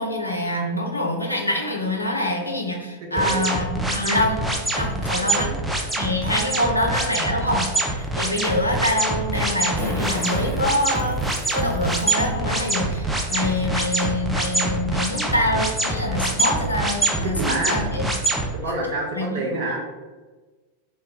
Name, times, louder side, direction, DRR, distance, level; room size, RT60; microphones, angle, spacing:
voice 1, 0.0-4.4 4.7-5.5 6.0-18.0 19.2-19.4, left 1 dB, 85° left, 1 dB, 0.4 m, -25 dB
voice 2, 3.1-3.6 5.1-5.6 17.2-17.8 18.6-19.8, right 2 dB, 50° right, 0 dB, 0.6 m, -28 dB
sound 1, 3.2-18.5, right 2 dB, 5° right, 0.4 m, -24 dB
Fart, 7.1-7.2 9.8-12.1 12.7-12.8 14.1-14.2 14.6-14.7 15.1-15.3, equal, 30° right, 1.1 m, -35 dB
2.1 x 2.1 x 3.4 m, 1.3 s
figure-of-eight pair, 90°, 0 cm